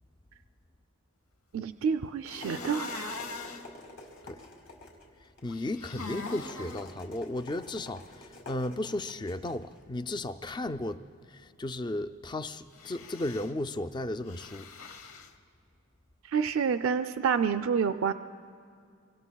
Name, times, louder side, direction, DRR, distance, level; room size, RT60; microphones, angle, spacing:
voice 1, 1.5-3.1 16.3-18.1, right 6 dB, 75° right, 9 dB, 0.4 m, -28 dB
sound 1, 1.9-10.8, left 2 dB, 55° left, 2.3 m, -50 dB
sound 2, 2.3-3.7 5.5-6.9 12.7-13.5 14.3-15.3, left 3 dB, 85° left, 0.9 m, -41 dB
voice 2, 5.4-11.0 11.6-14.7, left 1 dB, 20° left, 11 dB, 0.3 m, -34 dB
25.5 x 23.5 x 2.3 m, 2.3 s
head